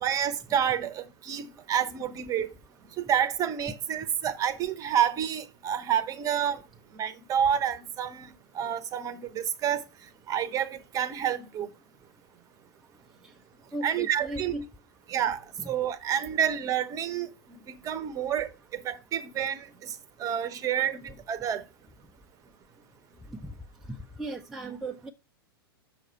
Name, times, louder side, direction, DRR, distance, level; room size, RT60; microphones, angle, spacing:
voice 1, 0.0-2.5 3.0-6.6 6.9-9.8 10.3-11.7 13.8-14.5 15.1-15.4 15.6-17.3 17.7-19.9 20.2-21.6, right 9 dB, 25° right, 0.8 m, -29 dB
voice 2, 13.7-14.7 15.6-15.7 23.4-23.5 24.2-25.1, right 2 dB, 5° right, 0.5 m, -36 dB
6.4 x 6.2 x 4.4 m
figure-of-eight pair, 100°, 13 cm